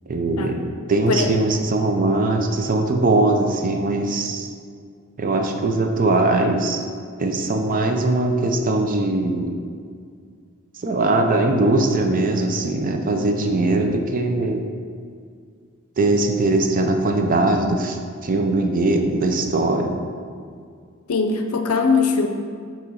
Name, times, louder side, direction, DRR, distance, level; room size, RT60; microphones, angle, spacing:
voice 1, 0.1-4.5 5.2-6.9 7.2-9.5 10.8-14.7 16.0-19.9, right 2 dB, 40° right, 4 dB, 0.5 m, -21 dB
voice 2, 21.1-22.3, left 4 dB, 85° left, 5 dB, 0.5 m, -20 dB
7.3 x 3.0 x 4.7 m, 2.2 s
head